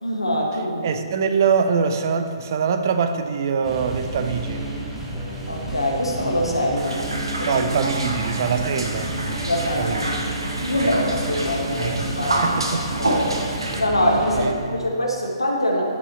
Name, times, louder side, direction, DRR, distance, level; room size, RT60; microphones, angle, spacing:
voice 1, 0.0-0.9 5.5-7.0 7.4-7.5 9.4-10.3 10.6-12.4 13.0-13.4 13.8-15.9, equal, 80° left, -1 dB, 1.5 m, -24 dB
voice 2, 0.8-4.7 7.5-9.1 9.6-10.2 10.8-11.0 11.8-12.1 12.4-12.9 13.4-13.5 14.3-15.0, right 6 dB, 45° right, 8 dB, 0.7 m, -24 dB
sound 1, 3.6-14.4, right 1 dB, 10° right, 1.3 m, -31 dB
sound 2, 6.8-13.8, right 1 dB, 70° right, 1.3 m, -28 dB
11.0 x 5.5 x 4.3 m, 2.2 s
figure-of-eight pair, 125°, 3 cm